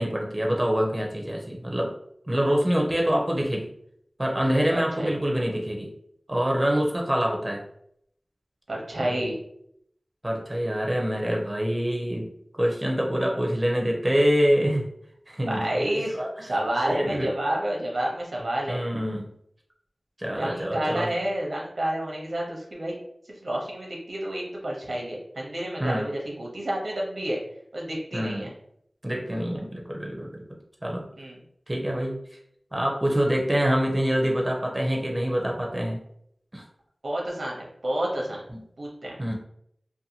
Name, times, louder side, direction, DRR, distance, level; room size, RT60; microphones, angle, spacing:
voice 1, 0.0-1.9 2.3-3.7 4.2-5.9 6.3-7.6 9.0-9.3 10.2-12.3 12.6-14.9 15.3-15.6 16.2-16.5 16.9-17.3 18.7-19.3 20.2-21.1 25.8-26.1 28.1-28.5 29.0-31.0 31.7-32.2 32.7-36.0 36.5-36.6 38.5-38.6 39.2-39.3, equal, 25° right, 0 dB, 0.5 m, -25 dB
voice 2, 4.7-5.2 8.7-9.4 15.4-16.2 16.5-18.8 20.4-22.9 23.4-27.4 27.7-28.5 31.2-31.4 37.0-38.4 38.8-39.2, right 1 dB, 90° right, -3 dB, 0.7 m, -29 dB
2.6 x 2.2 x 2.7 m, 0.73 s
wide cardioid pair, 50°, 0 cm